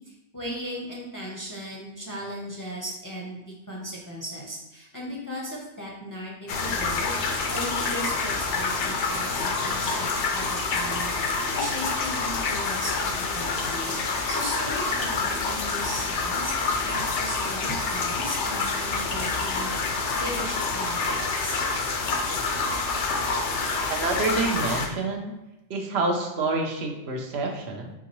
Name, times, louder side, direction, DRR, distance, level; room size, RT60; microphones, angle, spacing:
voice 1, 0.0-7.2 7.5-14.0 14.3-19.7 20.1-21.6, equal, 20° left, -3 dB, 0.6 m, -37 dB
sound 1, 6.5-24.9, left 4 dB, 85° left, 0.9 m, -27 dB
voice 2, 23.9-25.3 25.7-27.9, right 3 dB, 65° right, 3 dB, 0.9 m, -27 dB
4.5 x 3.5 x 3.0 m, 0.96 s
omnidirectional pair, 1.2 m